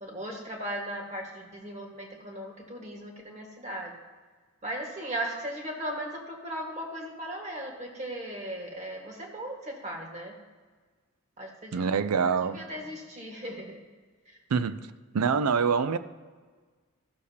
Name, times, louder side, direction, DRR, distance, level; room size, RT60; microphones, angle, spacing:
voice 1, 0.0-3.9 4.6-10.3 11.4-11.9 12.2-13.7 14.2-14.4, right 1 dB, 30° right, 1.6 m, -37 dB
voice 2, 11.7-12.6 14.5-14.8 15.1-16.0, right 5 dB, 90° right, 0.5 m, -25 dB
15.0 x 6.6 x 2.8 m
head